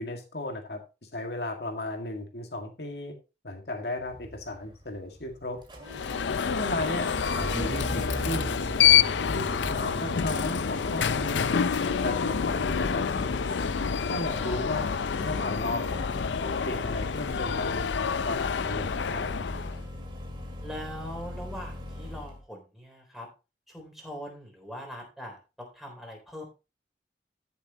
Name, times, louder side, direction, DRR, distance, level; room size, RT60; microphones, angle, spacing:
voice 1, 0.0-3.1 3.4-5.6 6.5-7.1 7.4-8.5 9.0-9.1 9.3-11.5 11.8-13.3 14.1-14.9 15.2-17.9 18.3-19.3, left 2 dB, 65° left, 3 dB, 2.0 m, -35 dB
Engine starting, 4.0-22.4, equal, 25° right, 2.2 m, -39 dB
Alarm, 5.9-19.8, left 7 dB, 85° left, 0.5 m, -27 dB
voice 2, 20.6-23.3 23.7-26.4, equal, ahead, 1 dB, 3.6 m, -41 dB
14.0 x 6.8 x 2.9 m, 0.29 s
head